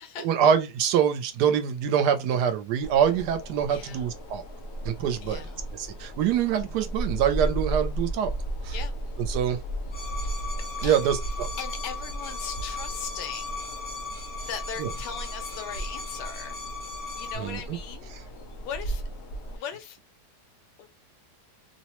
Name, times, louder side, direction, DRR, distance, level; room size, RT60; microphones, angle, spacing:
voice 1, 0.2-4.4 4.8-5.4 5.7-8.3 8.6-8.7 9.3-9.6 10.8-11.5 14.8-14.9 17.4-17.8, right 8 dB, 80° right, 1.1 m, -25 dB
sound 1, 2.8-19.6, right 1 dB, 65° left, 0.6 m, -35 dB
voice 2, 3.7-4.2 5.2-5.8 8.7-9.0 10.2-11.1 11.6-13.7 14.4-16.6 17.2-18.1 18.6-19.0 19.5-20.0 20.8-20.9, left 7 dB, 85° left, 1.2 m, -39 dB
sound 2, 9.9-17.3, left 4 dB, 10° left, 0.5 m, -38 dB
2.9 x 2.0 x 2.9 m
omnidirectional pair, 1.8 m